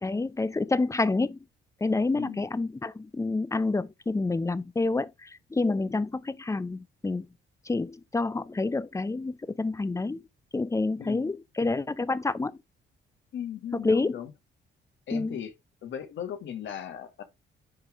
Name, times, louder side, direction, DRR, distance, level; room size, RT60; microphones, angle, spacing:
voice 1, 0.0-1.4 1.8-7.3 7.7-10.2 10.5-12.6 13.7-14.2 15.1-15.4, left 3 dB, 15° left, 0.6 m, -28 dB
voice 2, 2.1-2.5 11.0-11.4 13.3-14.3 15.1-15.5 15.8-17.2, left 9 dB, 70° left, 1.8 m, -37 dB
10.0 x 3.6 x 3.5 m
cardioid pair, 90°, 20 cm